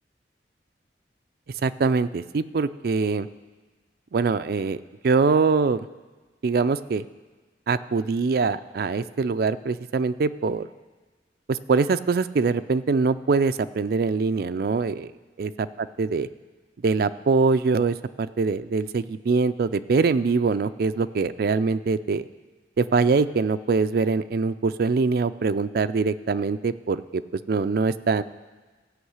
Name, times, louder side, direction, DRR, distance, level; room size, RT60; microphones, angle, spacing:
voice 1, 1.6-3.3 4.1-5.8 6.4-7.1 7.7-10.7 11.5-15.0 15.4-15.5 15.8-16.3 16.8-22.3 22.8-28.2, right 4 dB, 55° right, 11 dB, 0.4 m, -23 dB
14.5 x 5.5 x 8.0 m, 1.3 s
head